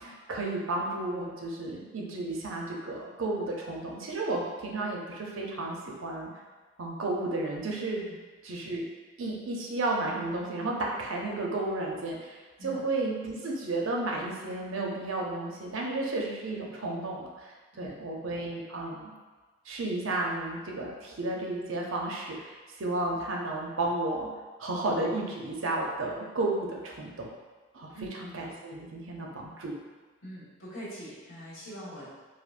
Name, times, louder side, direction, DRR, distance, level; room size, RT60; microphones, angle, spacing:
voice 1, 0.0-6.3 6.8-8.0 8.4-8.9 9.2-17.5 17.8-19.1 19.7-24.3 24.6-27.3 27.7-29.7, right 2 dB, 75° right, -1 dB, 0.6 m, -33 dB
voice 2, 30.2-32.1, equal, 85° left, -9 dB, 1.4 m, -43 dB
4.8 x 2.0 x 2.5 m, 1.4 s
head